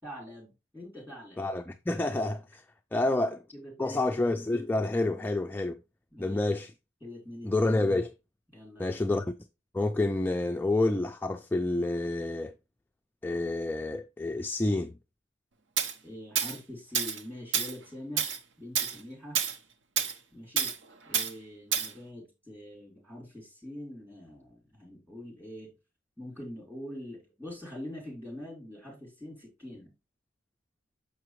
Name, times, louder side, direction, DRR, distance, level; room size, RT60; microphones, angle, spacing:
voice 1, 0.0-1.4 3.5-4.1 6.1-6.4 7.0-7.7 8.5-9.0 16.0-18.3 18.6-19.4 20.3-20.7 21.1-25.7 26.2-29.9, left 1 dB, 10° right, 4.0 m, -44 dB
voice 2, 1.4-2.6 2.9-3.4 3.8-5.8 6.2-6.7 7.4-8.1 8.8-9.3 9.7-12.5 13.2-15.0, left 2 dB, 10° left, 0.3 m, -28 dB
Tools, 15.8-15.9 16.4-16.6 16.9-17.2 17.5-17.7 18.2-18.4 18.7-19.0 19.3-19.6 20.0-20.1 20.6-20.8 21.1-21.3 21.7-21.9, right 7 dB, 75° right, 0.8 m, -28 dB
6.8 x 5.8 x 3.1 m
head